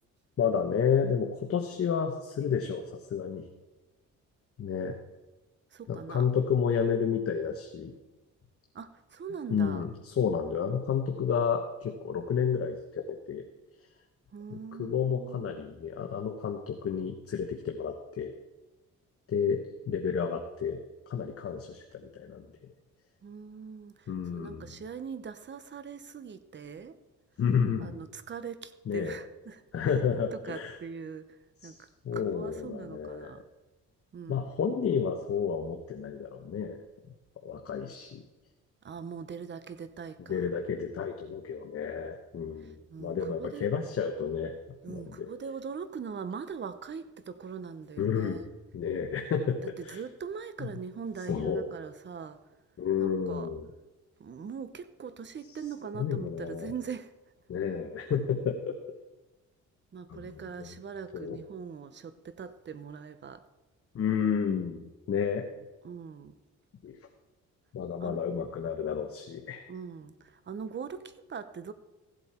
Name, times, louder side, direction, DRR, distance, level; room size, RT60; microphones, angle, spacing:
voice 1, 0.4-3.4 4.6-5.0 5.9-7.9 9.5-13.4 14.5-18.3 19.3-20.8 21.1-22.5 24.1-24.7 27.4-28.0 28.9-29.2 29.7-30.7 31.6-31.7 32.0-33.4 34.3-36.8 37.4-38.2 40.3-44.5 44.9-45.3 48.0-48.5 48.7-50.0 51.3-51.7 52.8-53.7 55.9-56.7 57.5-58.8 60.1-60.7 61.1-61.4 63.9-65.5 66.8-67.0 67.7-69.6, left 7 dB, 50° left, 4 dB, 1.1 m, -31 dB
voice 2, 5.7-6.3 8.7-9.8 14.3-15.6 23.2-27.0 27.8-29.6 30.3-33.4 34.1-34.5 38.8-40.5 42.6-43.7 44.8-48.5 49.8-52.4 53.0-53.5 54.2-57.1 59.9-63.4 65.8-66.3 68.0-68.2 69.7-71.7, right 6 dB, 35° right, 13 dB, 0.9 m, -41 dB
15.5 x 8.0 x 4.4 m, 1.1 s
cardioid pair, 90°, 30 cm